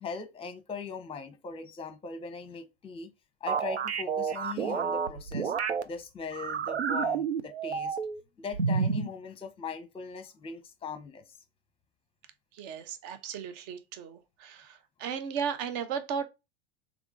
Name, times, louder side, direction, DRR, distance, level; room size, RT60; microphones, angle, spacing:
voice 1, 0.0-3.1 3.4-5.5 5.8-8.0 8.4-11.2, left 5 dB, 15° left, 0.9 m, -40 dB
sound 1, 3.5-5.8 6.3-8.2 8.5-9.1, right 6 dB, 80° right, 0.6 m, -30 dB
voice 2, 12.6-16.3, right 7 dB, 40° right, 0.8 m, -35 dB
3.6 x 3.6 x 3.3 m
figure-of-eight pair, 90°, 32 cm